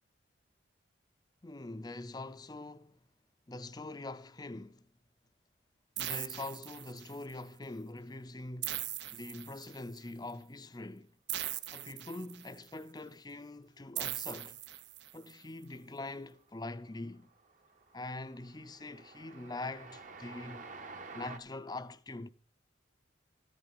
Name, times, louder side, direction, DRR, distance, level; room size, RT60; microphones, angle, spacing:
voice 1, 1.4-3.0 3.5-4.9 6.0-11.2 11.7-14.6 15.1-17.3 17.9-20.6 21.1-22.3, left 2 dB, 20° left, 0.5 m, -44 dB
sound 1, 6.0-7.3 8.6-10.0 11.3-12.7 14.0-15.3, right 13 dB, 60° right, 0.7 m, -40 dB
Train, 15.7-16.2 16.5-21.4, right 3 dB, 40° right, 1.0 m, -50 dB
13.5 x 8.7 x 5.5 m
head